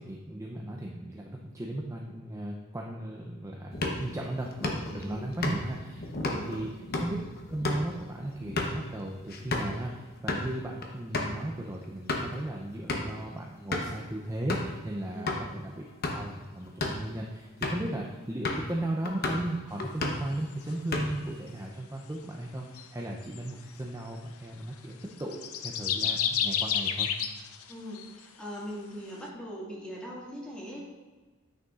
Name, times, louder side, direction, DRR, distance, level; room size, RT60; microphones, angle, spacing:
voice 1, 0.0-7.2 7.5-27.1, right 1 dB, 15° right, -1 dB, 0.5 m, -36 dB
sound 1, 3.7-9.8 10.1-10.5 10.8-10.9 11.1-11.3 11.8-12.4 12.9-13.2 13.7-14.0 14.5-14.8 15.3-15.4 15.9-16.3 16.7-17.1 17.6-17.9 18.4-18.7 19.0-19.5 19.8-20.3 20.7-21.3, left 2 dB, 45° left, 0.9 m, -33 dB
voice 2, 6.3-6.7 15.1-15.4 27.7-30.8, equal, 5° left, -5 dB, 1.8 m, -40 dB
sound 2, 22.8-22.9 23.3-23.5 25.2-28.1, left 8 dB, 80° left, 0.5 m, -30 dB
9.3 x 6.4 x 2.4 m, 1.3 s
head